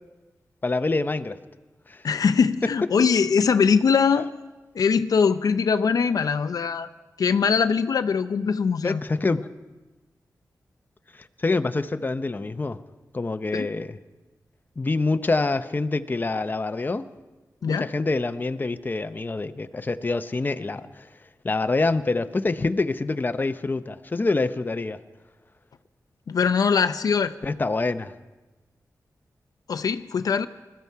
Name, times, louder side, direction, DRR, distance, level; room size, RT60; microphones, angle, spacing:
voice 1, 0.6-1.4 1.9-2.0 8.8-9.5 11.1-12.8 13.1-14.0 14.8-17.1 17.6-21.1 21.4-25.0 27.4-28.1, left 3 dB, 30° left, 10 dB, 0.7 m, -26 dB
voice 2, 2.0-4.3 4.7-6.9 7.2-9.0 13.5-13.7 17.6-17.9 26.3-27.3 29.7-30.5, left 6 dB, 75° left, 12 dB, 0.5 m, -22 dB
21.0 x 14.0 x 4.7 m, 1.2 s
wide cardioid pair, 75°, 6 cm